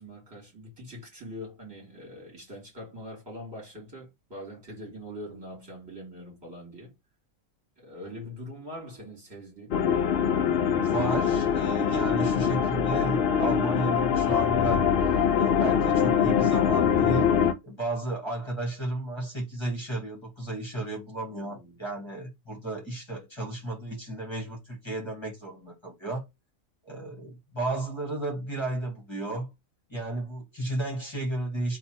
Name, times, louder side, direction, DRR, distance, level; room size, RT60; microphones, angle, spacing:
voice 1, 0.0-6.9 7.8-9.8 21.3-21.8, equal, 15° right, 2.8 m, -43 dB
sound 1, 9.7-17.5, left 8 dB, 60° left, 0.7 m, -23 dB
voice 2, 10.7-14.9 15.3-17.3 17.6-26.3 26.8-29.5 29.9-31.8, right 2 dB, 20° left, 1.9 m, -33 dB
4.0 x 2.8 x 4.3 m
omnidirectional pair, 1.4 m